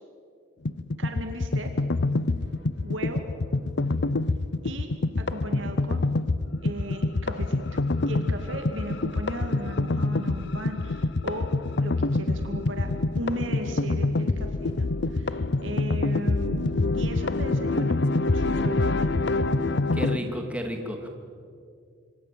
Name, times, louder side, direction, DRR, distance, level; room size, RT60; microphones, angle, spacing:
sound 1, 0.7-20.2, left 2 dB, 60° left, 0.7 m, -26 dB
voice 1, 1.0-1.7 2.8-3.2 4.6-4.9 5.2-6.1 6.6-18.1 18.3-19.1 20.1-20.3, right 1 dB, 75° right, 5 dB, 2.2 m, -37 dB
voice 2, 19.9-21.1, equal, 5° right, 3 dB, 2.7 m, -32 dB
26.0 x 25.5 x 7.6 m, 2.3 s
head